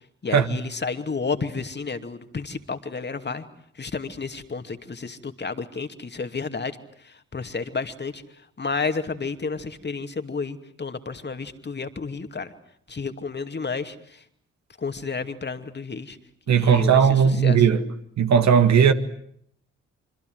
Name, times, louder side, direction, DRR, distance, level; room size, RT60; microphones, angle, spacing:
voice 1, 0.2-3.4 3.8-6.8 7.0-8.2 8.6-12.5 12.9-14.2 14.8-16.2 16.5-17.6, left 4 dB, 30° left, 2.6 m, -31 dB
voice 2, 16.5-17.8 18.2-18.9, right 7 dB, 50° right, 1.9 m, -17 dB
26.5 x 25.5 x 8.0 m
figure-of-eight pair, 45°, 34 cm